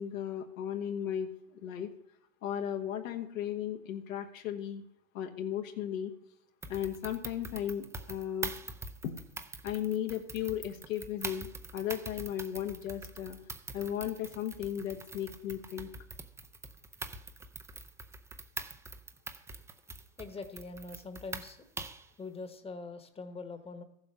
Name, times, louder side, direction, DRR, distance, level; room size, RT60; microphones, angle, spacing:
voice 1, 0.0-1.9 2.4-4.8 5.1-6.1 6.7-8.5 9.0-9.2 9.6-13.4 13.7-15.9, left 10 dB, 80° left, 4 dB, 1.5 m, -36 dB
sound 1, 6.6-22.1, right 3 dB, 5° right, 0.5 m, -44 dB
voice 2, 20.2-21.6 22.2-23.8, left 3 dB, 15° left, 10 dB, 1.1 m, -43 dB
14.0 x 7.7 x 5.7 m, 0.75 s
hypercardioid pair, 120°, 40 cm